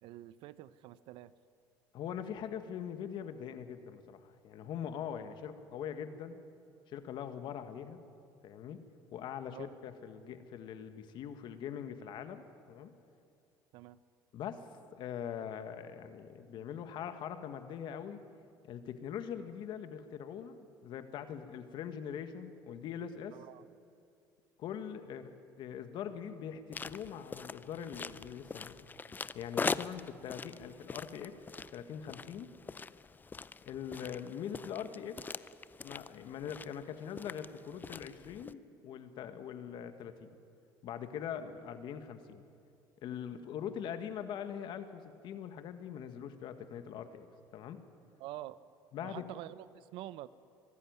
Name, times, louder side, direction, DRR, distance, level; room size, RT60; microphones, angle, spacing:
voice 1, 0.0-1.3 9.5-9.7 13.7-14.0 23.3-23.7 48.2-48.6 49.0-50.3, right 14 dB, 75° right, 16 dB, 0.7 m, -47 dB
voice 2, 1.9-6.4 6.9-8.0 8.4-8.8 9.1-12.4 12.7-12.9 14.3-14.7 14.9-18.2 18.6-23.4 24.6-28.9 29.3-31.3 31.7-32.5 33.6-35.2 35.8-40.3 40.8-42.4 43.0-47.3 47.5-47.8 48.9-49.4, left 8 dB, 60° left, 9 dB, 1.6 m, -42 dB
sound 1, 26.7-38.5, left 4 dB, 20° left, 0.5 m, -43 dB
23.5 x 12.5 x 9.5 m, 2.4 s
cardioid pair, 105°, 9 cm